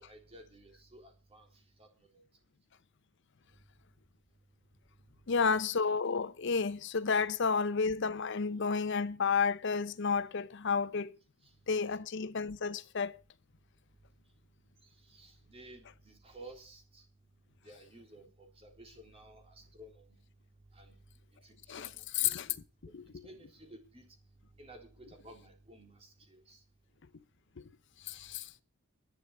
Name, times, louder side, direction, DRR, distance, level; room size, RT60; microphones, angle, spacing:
voice 1, 0.0-1.5 1.8-1.9 15.1-17.0 17.6-20.0 20.7-20.9 21.4-22.0 23.2-24.0 24.6-26.6, right 1 dB, 30° right, 3.6 m, -54 dB
voice 2, 5.3-11.1 11.7-13.1 21.7-21.9 22.2-22.5 22.9-23.0 28.1-28.5, left 5 dB, 55° left, 0.6 m, -31 dB
11.5 x 9.1 x 7.7 m
head